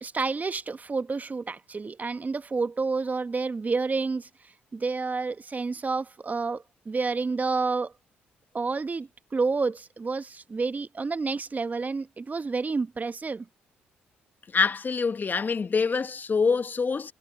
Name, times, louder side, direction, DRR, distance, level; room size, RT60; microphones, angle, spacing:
voice 1, 0.0-4.3 4.7-7.9 8.5-13.4, right 4 dB, 35° right, 1.6 m, -29 dB
voice 2, 14.5-17.1, left 5 dB, 40° left, 1.0 m, -25 dB
hypercardioid pair, 45°, 5 cm